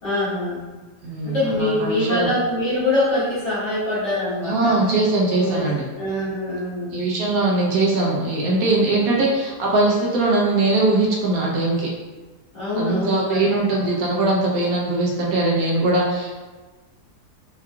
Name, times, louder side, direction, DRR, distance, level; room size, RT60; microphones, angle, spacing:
voice 1, 0.0-0.7 1.2-4.8 5.4-5.6 6.0-7.1 8.9-9.2 12.5-13.5 13.8-13.9, left 1 dB, 90° left, -9 dB, 2.0 m, -24 dB
voice 2, 1.0-2.3 4.4-5.8 6.9-11.9 12.8-16.4, right 2 dB, 65° right, -3 dB, 1.2 m, -21 dB
4.6 x 2.8 x 2.3 m, 1.3 s
omnidirectional pair, 1.8 m